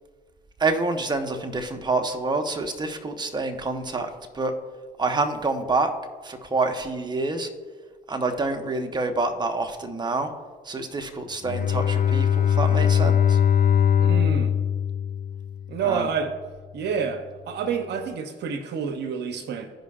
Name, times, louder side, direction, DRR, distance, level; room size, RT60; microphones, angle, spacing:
voice 1, 0.6-4.5 5.0-5.9 6.2-7.5 8.1-10.3 10.6-13.4 15.8-16.1, right 3 dB, 20° right, 5 dB, 1.1 m, -27 dB
Bowed string instrument, 11.4-15.8, left 9 dB, 50° left, 1.3 m, -21 dB
voice 2, 14.0-14.5 15.7-16.3 16.7-19.7, right 6 dB, 65° right, 8 dB, 0.8 m, -28 dB
15.5 x 5.2 x 2.5 m, 1.5 s
supercardioid pair, 65°, 19 cm